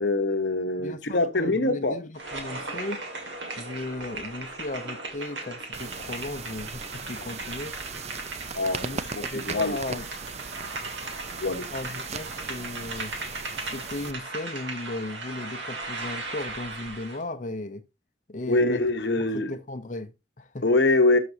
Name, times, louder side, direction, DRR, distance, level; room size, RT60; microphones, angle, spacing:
voice 1, 0.0-2.0 8.5-8.8 9.1-9.8 11.4-11.7 18.5-19.5 20.6-21.2, left 2 dB, 60° left, 1.0 m, -24 dB
voice 2, 0.8-3.0 3.6-7.7 8.8-10.1 11.7-13.1 13.7-17.8 18.3-18.9 19.1-20.7, left 2 dB, 40° left, 0.7 m, -36 dB
sound 1, 2.1-17.2, right 2 dB, 75° right, 2.0 m, -37 dB
sound 2, 5.7-14.1, right 5 dB, 35° right, 0.5 m, -38 dB
12.5 x 5.9 x 2.7 m
head